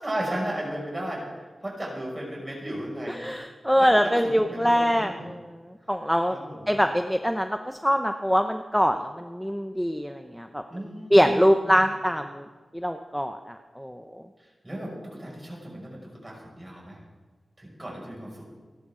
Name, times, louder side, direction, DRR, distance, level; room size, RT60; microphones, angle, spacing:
voice 1, 0.0-3.2 3.8-5.3 6.3-6.8 10.7-11.8 14.4-17.0 17.6-18.5, right 1 dB, 20° right, -2 dB, 6.0 m, -35 dB
voice 2, 3.1-6.4 6.7-10.6 11.1-12.5 12.7-14.2, equal, ahead, 6 dB, 0.7 m, -24 dB
29.5 x 11.5 x 3.8 m, 1.4 s
wide cardioid pair, 95°, 0 cm